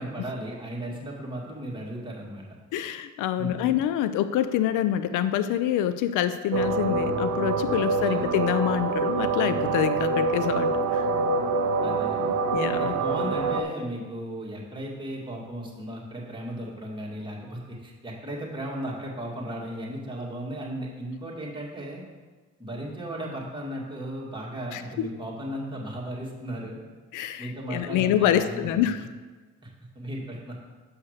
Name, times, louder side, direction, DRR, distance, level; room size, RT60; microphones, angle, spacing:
voice 1, 0.0-2.4 3.4-3.7 8.0-8.3 11.8-12.3 12.8-22.0 22.6-26.8 27.4-29.0 29.6-29.7 30.0-30.6, right 1 dB, 15° right, -4 dB, 2.2 m, -35 dB
voice 2, 2.7-11.1 12.5-13.0 24.7-25.1 27.1-29.0, left 11 dB, 90° left, 12 dB, 0.5 m, -26 dB
sound 1, 6.5-13.6, right 3 dB, 75° right, 0.7 m, -25 dB
6.7 x 5.5 x 6.6 m, 1.3 s
cardioid pair, 90°, 30 cm